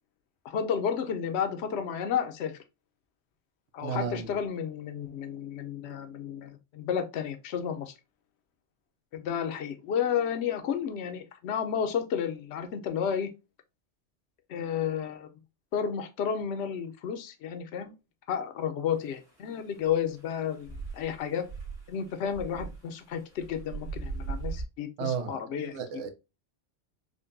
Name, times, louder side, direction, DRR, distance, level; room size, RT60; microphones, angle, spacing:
voice 1, 0.4-2.6 3.7-7.9 9.1-13.3 14.5-15.3 15.7-17.9 18.3-21.5 21.9-25.8, left 8 dB, 70° left, 0.9 m, -32 dB
voice 2, 3.8-4.4 25.0-26.1, right 7 dB, 90° right, 1.0 m, -34 dB
sound 1, 19.0-24.6, right 4 dB, 60° right, 1.6 m, -40 dB
5.0 x 2.2 x 2.5 m
omnidirectional pair, 1.2 m